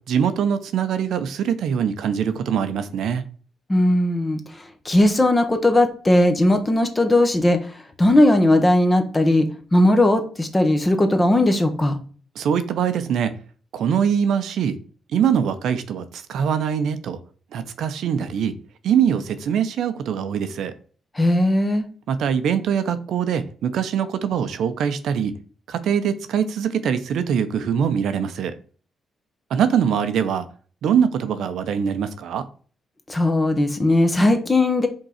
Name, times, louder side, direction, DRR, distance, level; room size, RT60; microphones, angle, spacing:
voice 1, 0.1-3.2 12.4-13.3 13.7-14.8 15.1-17.2 17.5-18.5 18.8-20.7 22.1-25.3 25.7-28.5 29.5-30.5 30.8-32.5, right 8 dB, 75° right, 10 dB, 0.7 m, -23 dB
voice 2, 3.7-4.4 4.8-7.6 8.0-12.0 21.2-21.8 33.1-34.9, left 1 dB, 15° left, 7 dB, 0.9 m, -18 dB
5.3 x 3.8 x 5.7 m, 0.42 s
cardioid pair, 155°, 0 cm